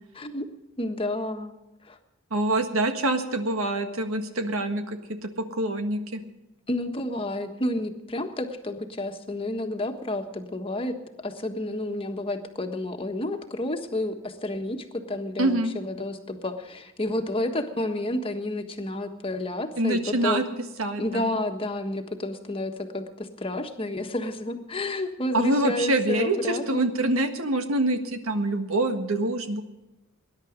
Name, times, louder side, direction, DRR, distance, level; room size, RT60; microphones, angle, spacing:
voice 1, 0.8-1.6 1.9-2.0 6.7-11.0 11.2-20.4 21.0-26.8, left 1 dB, 25° left, 5 dB, 1.5 m, -30 dB
voice 2, 2.3-6.2 15.4-15.7 19.8-20.4 20.8-21.3 25.3-29.6, right 2 dB, 90° right, 7 dB, 1.7 m, -25 dB
20.0 x 10.5 x 5.2 m, 1.0 s
head